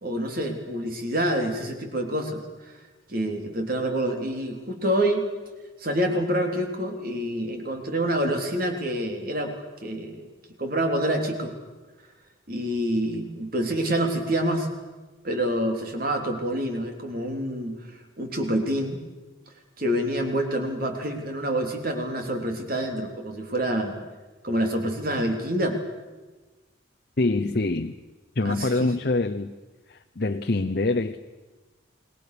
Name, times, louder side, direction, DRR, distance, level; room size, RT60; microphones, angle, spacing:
voice 1, 0.0-2.7 3.1-5.3 5.8-9.5 9.8-10.3 10.6-11.5 12.5-14.7 15.2-17.8 18.2-19.0 19.8-23.9 24.4-25.8 28.4-28.9, right 1 dB, 45° right, 4 dB, 3.5 m, -27 dB
voice 2, 27.2-28.0 28.4-29.5 29.9-31.2, left 2 dB, 50° left, 6 dB, 0.8 m, -25 dB
29.0 x 20.5 x 6.9 m, 1.2 s
head